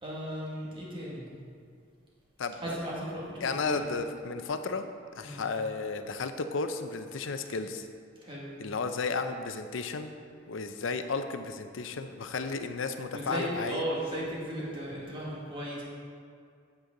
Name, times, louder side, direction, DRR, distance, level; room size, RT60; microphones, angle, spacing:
voice 1, 0.0-1.3 2.6-3.9 5.2-5.4 8.2-8.5 13.1-15.8, equal, 25° right, -5 dB, 1.9 m, -36 dB
voice 2, 3.4-7.9 8.6-10.1 10.5-13.8, left 4 dB, 75° left, 8 dB, 0.6 m, -33 dB
8.4 x 8.0 x 3.8 m, 2.3 s
head